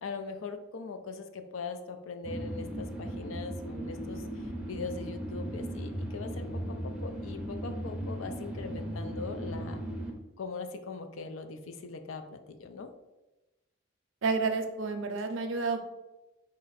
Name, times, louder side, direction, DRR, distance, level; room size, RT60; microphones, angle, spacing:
voice 1, 0.0-9.8 10.4-12.9, left 4 dB, 80° left, 8 dB, 0.4 m, -41 dB
sound 1, 2.2-10.1, right 1 dB, 5° right, 0.5 m, -37 dB
voice 2, 14.2-15.8, right 4 dB, 70° right, 7 dB, 0.5 m, -30 dB
4.3 x 2.5 x 3.9 m, 1.0 s
head